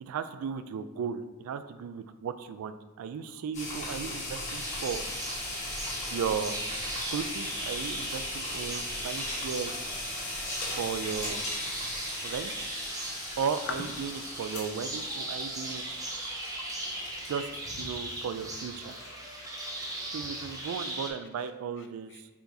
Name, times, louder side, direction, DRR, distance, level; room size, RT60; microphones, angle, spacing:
voice 1, 0.0-5.0 6.1-6.6 7.1-9.7 10.7-11.5 12.2-12.6 13.4-15.8 17.2-18.9 20.1-22.3, right 6 dB, 85° right, 12 dB, 0.3 m, -35 dB
sound 1, 3.5-17.5, left 2 dB, 30° left, 1.2 m, -38 dB
sound 2, 4.5-21.1, right 1 dB, 15° right, 0.5 m, -39 dB
voice 2, 16.0-17.3 17.9-18.2 19.4-20.2, left 4 dB, 55° left, 6 dB, 0.4 m, -52 dB
4.8 x 3.8 x 2.7 m, 1.1 s
head